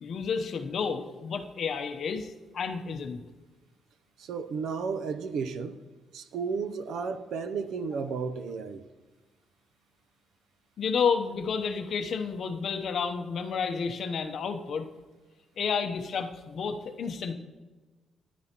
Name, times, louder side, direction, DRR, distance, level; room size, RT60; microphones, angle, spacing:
voice 1, 0.0-3.2 10.8-14.9 15.6-17.3, left 6 dB, 55° left, 0.8 m, -31 dB
voice 2, 4.2-5.8 6.1-8.8, right 5 dB, 80° right, 0.6 m, -33 dB
13.5 x 10.5 x 3.0 m
cardioid pair, 140°, 0 cm